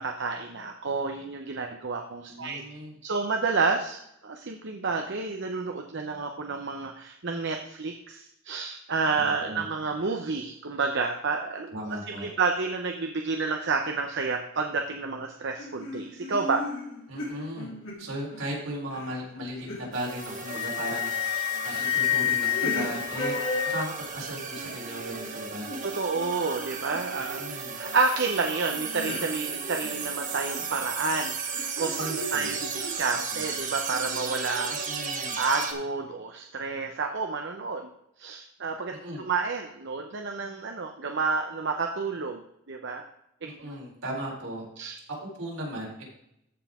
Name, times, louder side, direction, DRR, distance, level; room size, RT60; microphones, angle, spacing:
voice 1, 0.0-11.7 12.2-16.6 25.8-34.8 35.4-37.9 38.2-42.4 42.7-43.1 43.4-43.7 44.8-45.0, right 4 dB, 60° right, 4 dB, 0.8 m, -30 dB
voice 2, 2.2-2.9 9.1-9.6 11.7-12.3 17.1-17.7 18.0-21.1 21.6-23.4 23.6-25.7 27.4-27.8 31.9-32.5 33.1-33.5 34.9-35.4 38.9-39.2 43.4-44.6 45.4-46.0, right 1 dB, 80° right, -3 dB, 4.1 m, -37 dB
sound 1, 15.6-18.5 18.9-20.0 20.5-20.9 21.5-21.9 22.3-27.4 27.7-28.2 28.5-30.8 31.5-32.9, left 1 dB, 65° left, 3.1 m, -38 dB
sound 2, 19.9-35.7, right 5 dB, 40° right, 1.3 m, -35 dB
Wind instrument woodwind instrument, 20.1-24.1, left 12 dB, 85° left, 0.4 m, -29 dB
14.5 x 5.6 x 3.7 m, 0.79 s
head